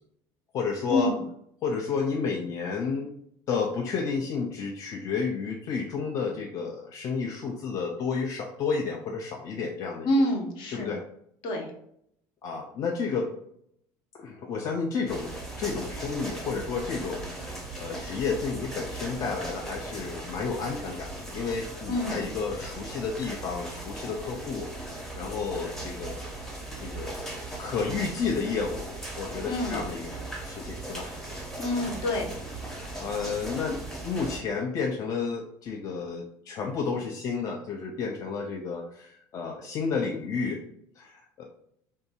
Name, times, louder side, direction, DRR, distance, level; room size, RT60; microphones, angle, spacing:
voice 1, 0.5-1.1 1.6-3.1 3.5-10.1 10.7-11.0 12.4-13.3 14.1-26.5 26.8-27.3 27.6-30.2 30.4-31.1 32.8-40.6 41.0-41.4, left 5 dB, 40° left, 1 dB, 0.3 m, -31 dB
voice 2, 10.0-10.9 11.4-11.7 21.9-22.2 29.4-29.8 31.6-32.3, left 1 dB, 60° left, 1 dB, 0.7 m, -27 dB
sound 1, 15.1-34.4, right 2 dB, 5° left, 0.6 m, -38 dB
2.6 x 2.2 x 2.8 m, 0.72 s
supercardioid pair, 115°, 9 cm